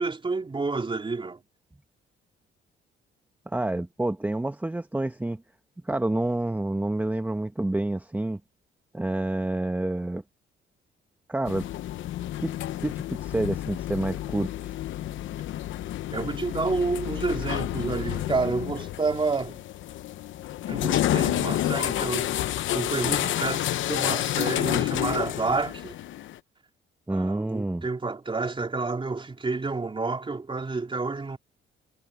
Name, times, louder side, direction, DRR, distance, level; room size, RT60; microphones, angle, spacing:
voice 1, 0.0-1.4 16.1-19.6 20.7-26.0 27.1-31.4, right 3 dB, 25° right, 3.6 m, -29 dB
voice 2, 3.5-5.4 5.8-8.4 8.9-10.2 11.3-11.7 12.4-14.7 27.1-27.9, right 2 dB, 10° right, 1.0 m, -28 dB
sound 1, 11.4-26.4, left 13 dB, 75° left, 0.8 m, -29 dB
cardioid pair, 90°, 20 cm